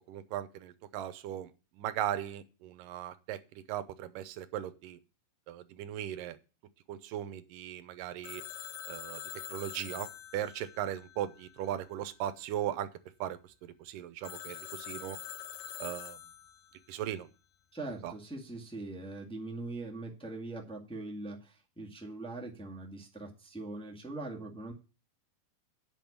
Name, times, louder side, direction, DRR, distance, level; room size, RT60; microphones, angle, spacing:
voice 1, 0.1-5.0 5.5-6.4 6.9-8.4 8.9-9.2 9.5-12.9 13.2-15.2 15.8-16.2 16.9-17.3 18.0-18.1, right 11 dB, 75° right, 11 dB, 2.2 m, -38 dB
Telephone, 8.2-11.9 14.2-16.8, left 11 dB, 75° left, 2.4 m, -45 dB
voice 2, 17.7-24.7, right 2 dB, 5° left, -2 dB, 0.5 m, -42 dB
9.2 x 6.1 x 8.5 m, 0.33 s
omnidirectional pair, 4.4 m